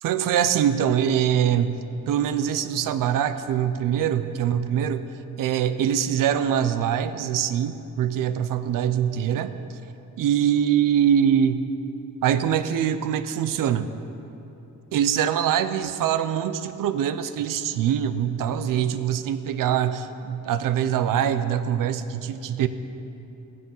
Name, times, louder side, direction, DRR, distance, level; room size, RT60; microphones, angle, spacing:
voice 1, 0.0-1.8 2.1-5.1 5.4-9.5 10.2-11.7 12.2-13.9 14.9-22.7, right 9 dB, 85° right, 11 dB, 0.8 m, -23 dB
15.5 x 15.0 x 5.6 m, 3.0 s
wide cardioid pair, 180°, 32 cm